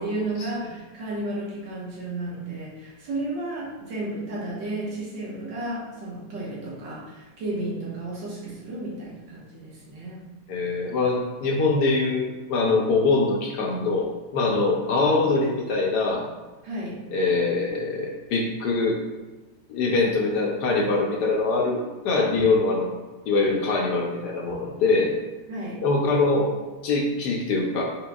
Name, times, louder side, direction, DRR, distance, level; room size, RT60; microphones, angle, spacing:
voice 1, 0.0-10.2 16.6-17.0 25.5-25.8, right 2 dB, 70° right, -5 dB, 1.9 m, -33 dB
voice 2, 10.5-16.2 17.1-19.0 19.7-22.9 23.3-25.1 25.8-26.5 26.8-27.8, left 3 dB, 70° left, 0 dB, 1.1 m, -23 dB
4.6 x 4.2 x 2.3 m, 1.2 s
omnidirectional pair, 2.0 m